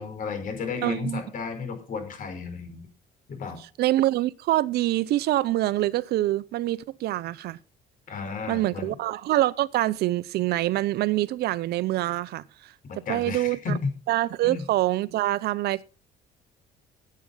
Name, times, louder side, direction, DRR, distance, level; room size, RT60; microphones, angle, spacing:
voice 1, 0.0-2.9 3.3-3.6 8.1-8.9 12.8-13.9 14.4-14.6, left 4 dB, 55° left, 5.1 m, -33 dB
voice 2, 0.8-1.2 3.8-7.6 8.5-12.7 13.1-13.8 14.1-15.8, right 15 dB, 70° right, 0.7 m, -25 dB
15.5 x 8.5 x 5.5 m
cardioid pair, 110°, 17 cm